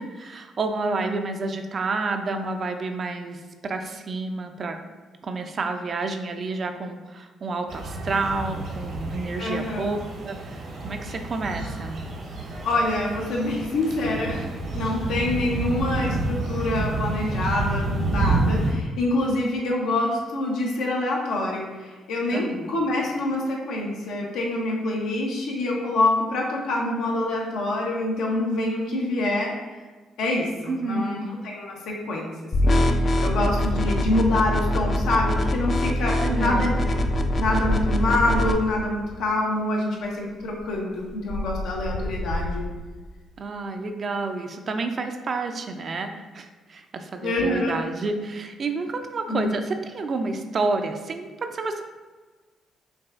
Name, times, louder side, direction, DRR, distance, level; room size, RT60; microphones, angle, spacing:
voice 1, 0.0-4.8 5.2-10.0 10.2-12.0 22.3-22.7 30.7-31.2 36.2-36.7 43.4-51.8, right 3 dB, 45° right, 6 dB, 0.4 m, -29 dB
sound 1, 7.7-18.7, right 2 dB, 70° right, 0.9 m, -29 dB
voice 2, 9.4-10.0 12.6-14.5 14.7-29.6 30.2-31.2 31.4-32.3 32.6-32.8 33.2-36.8 37.4-42.6 47.2-47.8 49.3-49.5, left 2 dB, 80° left, -1 dB, 0.8 m, -26 dB
sound 2, 32.5-38.5, left 1 dB, 40° left, 0.4 m, -23 dB
sound 3, 36.4-39.0 40.0-40.1 40.4-43.0, left 1 dB, 60° left, 1.3 m, -32 dB
5.9 x 2.3 x 2.4 m, 1.3 s
cardioid pair, 90°, 0 cm